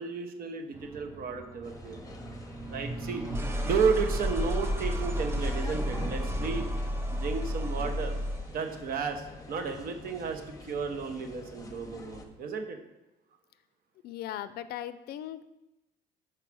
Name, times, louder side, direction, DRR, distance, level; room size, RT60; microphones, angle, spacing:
voice 1, 0.0-2.0 2.7-6.7 7.1-8.2 8.5-12.8, right 5 dB, 60° right, 5 dB, 0.9 m, -33 dB
sound 1, 0.7-8.6, equal, 15° right, 0.6 m, -33 dB
sound 2, 1.6-12.2, left 2 dB, 20° left, 0.8 m, -47 dB
voice 2, 14.0-15.4, left 11 dB, 70° left, 14 dB, 0.4 m, -38 dB
4.7 x 4.7 x 6.1 m, 0.97 s
cardioid pair, 110°, 17 cm